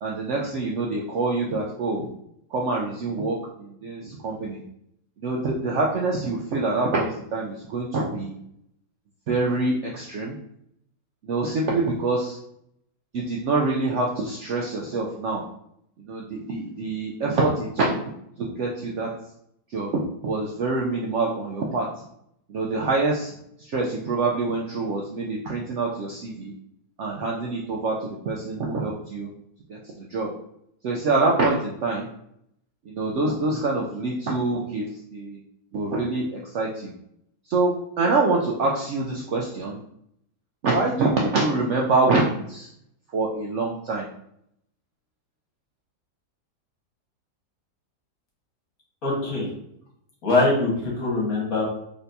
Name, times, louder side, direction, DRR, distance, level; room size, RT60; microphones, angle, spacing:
voice 1, 0.0-2.1 2.5-4.6 5.2-8.4 9.3-10.4 11.2-12.4 13.1-15.4 16.0-18.1 18.4-19.1 19.7-19.9 20.2-21.9 22.5-23.3 23.6-26.5 27.0-29.3 29.7-30.3 30.8-32.1 32.9-35.4 35.7-36.9 37.5-39.8 40.6-42.7 43.1-44.1, right 3 dB, 70° right, -2 dB, 0.7 m, -25 dB
voice 2, 49.0-49.5 50.2-51.6, left 2 dB, 60° left, -3 dB, 1.7 m, -23 dB
4.2 x 3.3 x 2.6 m, 0.74 s
omnidirectional pair, 1.7 m